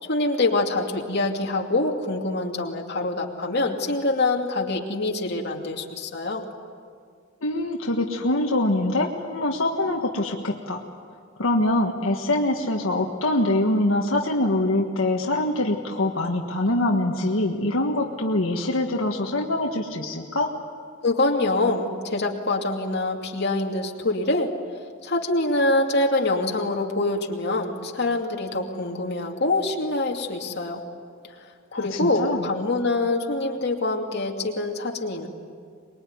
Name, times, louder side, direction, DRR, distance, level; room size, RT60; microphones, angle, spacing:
voice 1, 0.0-6.4 21.0-24.5 25.0-30.8 31.4-31.5 31.7-35.3, left 2 dB, 55° left, 1 dB, 2.6 m, -25 dB
voice 2, 7.4-10.8 11.4-20.6 31.7-32.4, left 1 dB, 85° left, 1 dB, 1.6 m, -24 dB
24.5 x 21.5 x 9.6 m, 2.2 s
head